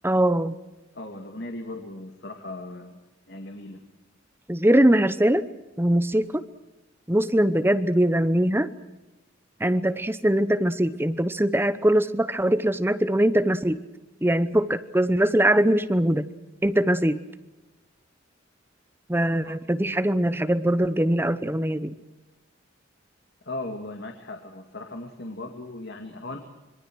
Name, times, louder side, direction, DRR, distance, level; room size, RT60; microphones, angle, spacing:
voice 1, 0.0-0.6 4.5-5.5 5.8-6.4 7.1-8.7 9.6-13.8 14.2-16.3 16.6-17.2 19.1-21.9, right 1 dB, 10° right, 12 dB, 0.9 m, -22 dB
voice 2, 0.9-3.0 3.3-3.8 19.4-19.6 23.4-26.4, left 2 dB, 55° left, 4 dB, 2.4 m, -37 dB
26.0 x 23.0 x 6.3 m, 1.1 s
head